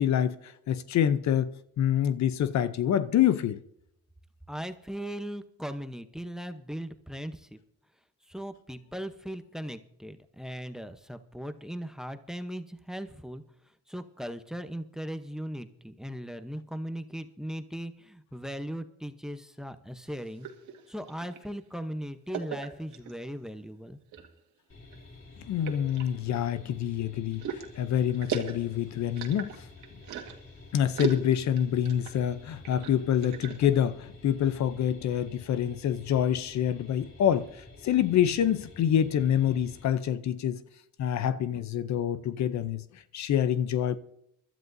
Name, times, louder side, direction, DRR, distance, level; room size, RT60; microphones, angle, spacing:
voice 1, 0.0-3.6 25.5-29.6 30.7-40.6 41.0-44.0, left 10 dB, 65° left, 0.7 m, -27 dB
voice 2, 4.5-7.6 8.3-13.4 13.9-20.5 20.9-24.0, equal, ahead, 0.9 m, -38 dB
sound 1, 20.1-21.5 22.3-23.2 23.9-24.4 24.8-25.0 25.6-26.7 27.3-30.5 30.9-32.2 32.5-33.8, right 7 dB, 80° right, 1.8 m, -37 dB
sound 2, 24.7-39.8, left 3 dB, 45° left, 2.8 m, -50 dB
24.0 x 12.5 x 2.7 m
cardioid pair, 90°, 30 cm